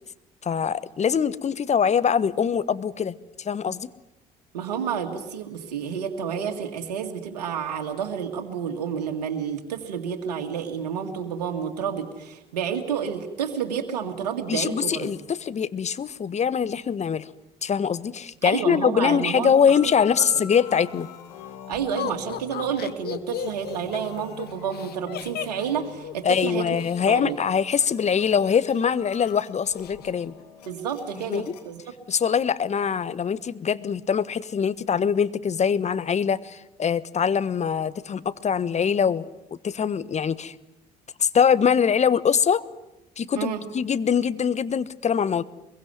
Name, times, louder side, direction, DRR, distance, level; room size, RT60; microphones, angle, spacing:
voice 1, 0.4-3.9 14.5-17.3 17.6-21.1 26.2-30.3 31.3-31.5 32.1-39.3 39.6-40.5 41.2-42.6 43.2-45.4, left 7 dB, 35° left, 16 dB, 1.2 m, -23 dB
voice 2, 4.5-15.1 18.4-19.5 19.8-19.9 20.2-20.3 21.7-26.8 27.1-27.4 30.7-31.8 43.4-43.6, right 7 dB, 75° right, 3 dB, 2.1 m, -30 dB
sound 1, 19.7-31.7, left 8 dB, 75° left, 2.6 m, -45 dB
Laughter, 22.0-27.0 28.1-28.9 29.2-29.3 29.7-30.1, left 11 dB, 50° left, 1.4 m, -35 dB
24.5 x 22.5 x 9.4 m, 0.93 s
figure-of-eight pair, 55°, 20 cm